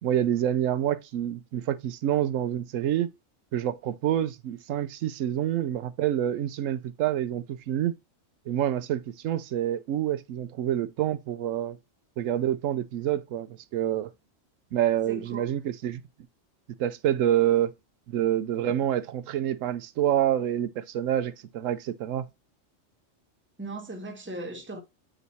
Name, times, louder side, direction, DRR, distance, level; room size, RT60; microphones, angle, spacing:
voice 1, 0.0-3.1 3.5-7.9 8.5-11.8 12.2-14.1 14.7-16.0 16.8-17.7 18.1-22.3, right 11 dB, 90° right, 1.0 m, -27 dB
voice 2, 15.1-15.5 23.6-24.8, right 2 dB, 10° right, 0.8 m, -38 dB
7.7 x 3.1 x 4.0 m
omnidirectional pair, 1.3 m